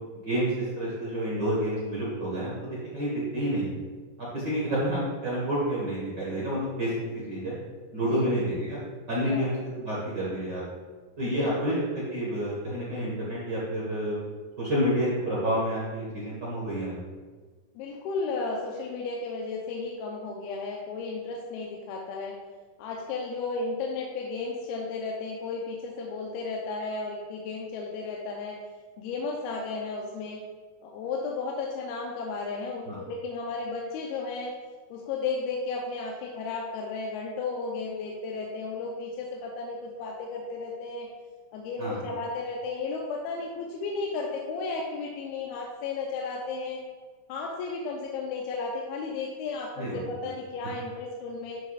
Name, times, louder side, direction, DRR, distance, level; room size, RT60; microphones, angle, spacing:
voice 1, 0.1-3.7 4.2-6.9 7.3-7.5 7.9-8.8 9.1-10.6 11.2-14.2 14.6-17.0 32.9-33.0 41.8-42.0 49.8-50.0, equal, 80° right, -7 dB, 0.9 m, -29 dB
voice 2, 11.3-11.7 17.8-22.3 22.8-28.6 29.0-30.4 30.8-34.5 34.9-41.1 41.5-46.8 47.3-51.6, left 4 dB, 85° left, -1 dB, 2.6 m, -34 dB
10.0 x 6.5 x 2.4 m, 1.4 s
omnidirectional pair, 4.5 m